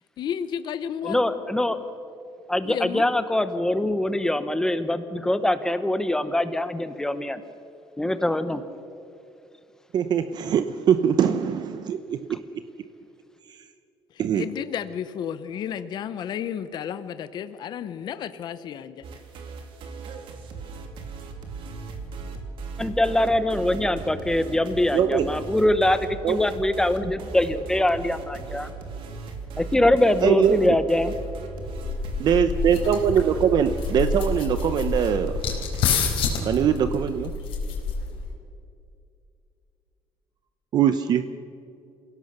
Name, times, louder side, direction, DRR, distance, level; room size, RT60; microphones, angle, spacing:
voice 1, 0.2-1.2 2.6-3.1 14.3-19.0, left 9 dB, 50° left, 12 dB, 0.8 m, -32 dB
voice 2, 1.0-1.8 2.5-7.4 8.0-8.6 12.3-12.4 22.8-26.0 26.3-28.7 29.6-31.1, left 1 dB, 5° left, 11 dB, 1.0 m, -23 dB
voice 3, 9.9-12.4 14.2-14.5 24.9-25.3 26.2-26.4 30.2-30.7 32.2-35.3 35.9-36.0 36.4-37.3 40.7-41.2, right 8 dB, 50° right, 10 dB, 0.8 m, -22 dB
sound 1, 19.0-36.5, right 4 dB, 65° right, 2.8 m, -38 dB
sound 2, 31.6-38.3, left 5 dB, 75° left, 4.0 m, -28 dB
27.5 x 17.0 x 6.7 m, 2.6 s
cardioid pair, 160°, 9 cm